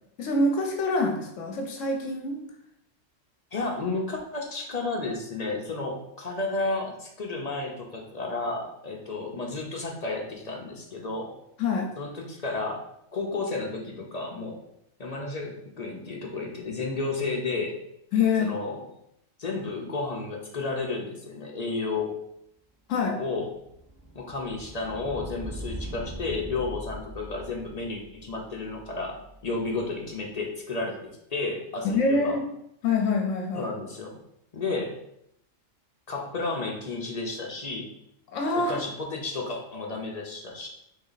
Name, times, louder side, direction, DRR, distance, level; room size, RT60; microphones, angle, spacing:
voice 1, 0.2-2.4 11.6-11.9 18.1-18.5 22.9-23.2 31.8-32.4 32.8-33.7 38.3-38.8, left 3 dB, 75° left, 3 dB, 1.0 m, -25 dB
voice 2, 3.5-11.4 12.0-12.8 13.1-14.6 15.0-17.8 18.4-18.8 19.4-22.2 23.2-23.5 24.1-31.0 31.3-32.4 33.5-34.2 34.5-35.0 36.1-37.9 38.5-40.7, left 3 dB, 40° left, 0 dB, 0.6 m, -32 dB
sound 1, 22.9-29.8, equal, 10° right, 1.5 m, -42 dB
4.1 x 3.2 x 3.9 m, 0.76 s
omnidirectional pair, 1.4 m